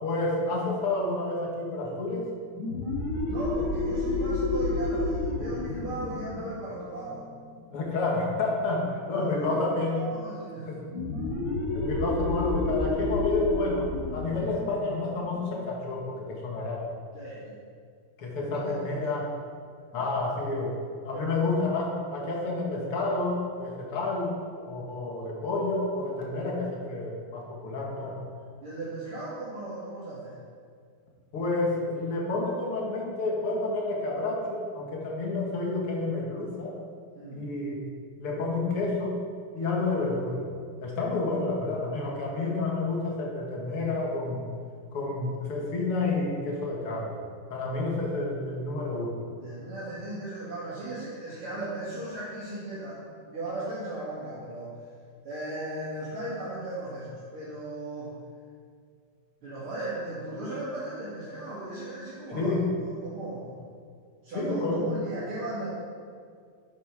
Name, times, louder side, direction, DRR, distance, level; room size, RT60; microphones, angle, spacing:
voice 1, 0.0-2.3 7.7-10.0 10.7-10.8 11.7-13.9 14.1-16.9 18.2-19.3 19.9-20.8 21.0-24.4 24.6-28.2 31.3-36.7 37.3-37.8 38.2-39.2 39.5-40.5 40.8-44.4 44.9-47.2 47.5-49.2 62.3-62.7 64.3-64.9, left 2 dB, 85° left, -2 dB, 2.6 m, -29 dB
sound 1, 2.5-7.8 10.9-16.2, left 2 dB, 40° right, 2.7 m, -30 dB
voice 2, 3.2-7.2 9.1-9.6 9.9-10.8 17.1-17.6 18.4-19.2 19.9-20.1 21.1-21.3 23.8-24.0 26.3-26.4 28.6-30.4 37.2-37.5 49.4-54.7 55.2-58.1 59.4-63.5 64.2-65.7, right 2 dB, 70° right, -11 dB, 3.3 m, -37 dB
11.0 x 8.5 x 4.9 m, 2.1 s
omnidirectional pair, 2.4 m